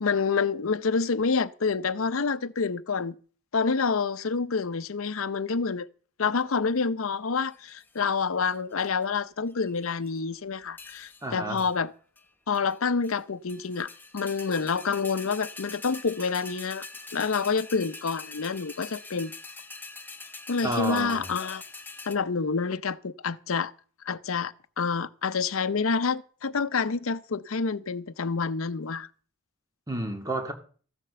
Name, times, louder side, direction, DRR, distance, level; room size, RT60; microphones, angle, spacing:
voice 1, 0.0-3.1 3.5-5.9 6.2-11.9 12.5-16.9 17.1-19.3 20.5-21.6 22.1-23.7 24.0-29.1, left 5 dB, 85° left, 0.7 m, -28 dB
sound 1, 7.5-8.0 8.5-9.0 9.5-10.2 10.8-11.3 11.6-11.7 12.2-12.3 12.5-13.2 13.5-22.1, left 3 dB, 10° left, 1.0 m, -44 dB
voice 2, 11.2-11.6 20.6-21.3 29.9-30.5, right 1 dB, 15° right, 2.0 m, -30 dB
14.5 x 7.5 x 6.8 m
head